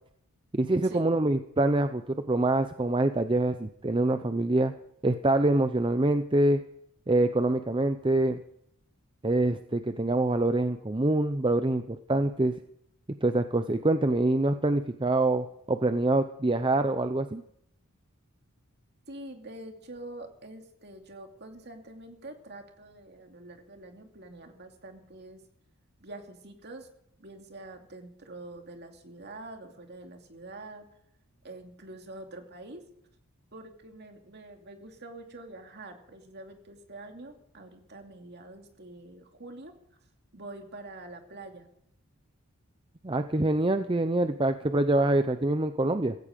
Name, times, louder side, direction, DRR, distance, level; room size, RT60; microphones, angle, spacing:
voice 1, 0.5-4.7 5.0-6.6 7.1-8.4 9.2-12.5 13.2-17.4 43.0-46.2, right 2 dB, 20° right, 9 dB, 0.6 m, -25 dB
voice 2, 19.1-25.4 26.0-26.9 27.2-30.9 31.4-32.8 33.5-39.8 40.3-41.7, right 2 dB, 50° right, 4 dB, 2.6 m, -45 dB
16.0 x 16.0 x 5.3 m, 0.72 s
head